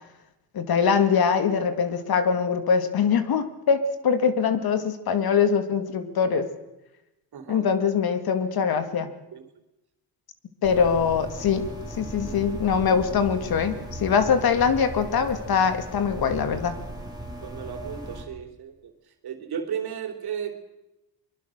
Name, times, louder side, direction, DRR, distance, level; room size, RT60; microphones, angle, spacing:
voice 1, 0.5-6.5 7.5-9.1 10.6-11.6 11.9-16.7, left 6 dB, 65° left, 9 dB, 2.3 m, -23 dB
voice 2, 7.3-7.7 9.3-9.4 17.4-18.9 19.2-20.5, right 8 dB, 70° right, 6 dB, 3.6 m, -34 dB
sound 1, 10.6-18.2, right 1 dB, 10° right, 3.9 m, -37 dB
23.5 x 22.5 x 6.6 m, 0.96 s
cardioid pair, 130°, 40 cm